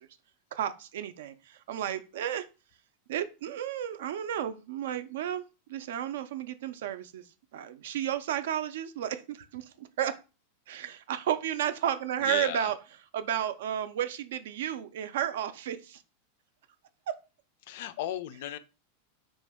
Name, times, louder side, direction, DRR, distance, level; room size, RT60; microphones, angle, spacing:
voice 1, 0.5-2.5 3.1-5.4 5.7-7.3 7.5-10.2 10.7-12.8 13.1-16.0 17.1-17.2, right 10 dB, 75° right, 11 dB, 0.3 m, -32 dB
voice 2, 12.2-12.7 17.7-18.6, left 12 dB, 65° left, 13 dB, 0.3 m, -35 dB
2.5 x 2.2 x 3.4 m, 0.31 s
supercardioid pair, 145°, 0 cm